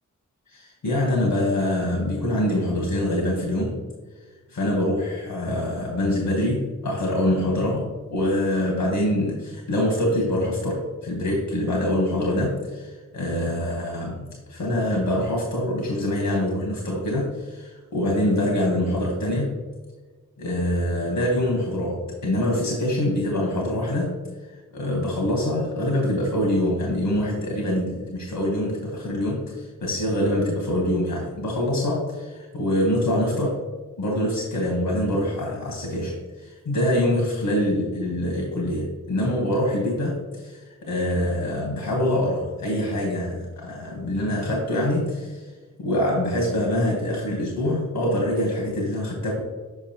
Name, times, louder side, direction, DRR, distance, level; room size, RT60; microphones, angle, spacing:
voice 1, 0.5-3.8 4.5-19.5 20.4-24.1 24.7-33.6 34.0-45.5 45.8-49.4, left 1 dB, 80° left, -1 dB, 1.3 m, -25 dB
7.1 x 5.0 x 2.9 m, 1.4 s
wide cardioid pair, 80°, 33 cm